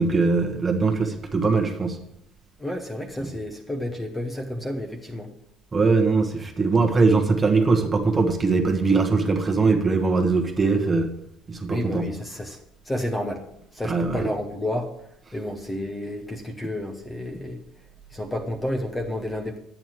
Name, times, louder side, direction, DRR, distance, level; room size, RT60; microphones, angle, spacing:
voice 1, 0.0-2.0 5.7-11.1 11.5-12.1 13.8-14.3, right 4 dB, 20° right, 4 dB, 1.3 m, -21 dB
voice 2, 2.6-5.3 11.7-12.6 12.9-13.4 13.7-14.9 15.3-17.6 18.1-19.6, left 1 dB, 10° left, 3 dB, 0.9 m, -30 dB
11.0 x 9.0 x 4.6 m, 0.80 s
cardioid pair, 155°, 0 cm